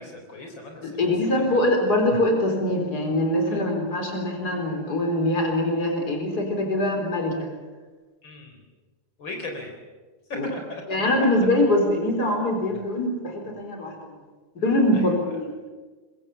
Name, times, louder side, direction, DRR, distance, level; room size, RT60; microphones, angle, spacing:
voice 1, 0.0-1.0 1.5-1.6 3.5-3.6 8.2-8.6 9.2-9.7 10.3-10.8 14.9-15.1, left 2 dB, 80° left, 3 dB, 4.7 m, -37 dB
voice 2, 0.8-7.5 10.3-10.5 10.9-14.2 14.6-15.5, left 1 dB, 55° left, 3 dB, 4.7 m, -23 dB
25.5 x 22.0 x 7.3 m, 1.3 s
omnidirectional pair, 2.1 m